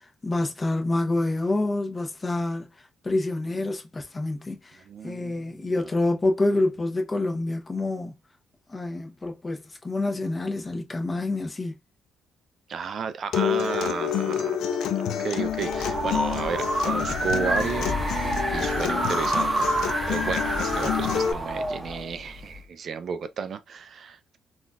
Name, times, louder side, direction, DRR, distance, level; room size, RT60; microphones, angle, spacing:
voice 1, 0.2-8.1 8.7-11.7, left 2 dB, 25° left, 0.8 m, -27 dB
voice 2, 4.9-5.9 12.7-19.8 20.1-24.4, right 6 dB, 55° right, 0.3 m, -33 dB
Acoustic guitar, 13.3-21.3, left 8 dB, 80° left, 0.4 m, -28 dB
sound 1, 15.4-22.6, right 1 dB, 15° right, 0.8 m, -28 dB
3.8 x 2.4 x 2.2 m
cardioid pair, 90°, 0 cm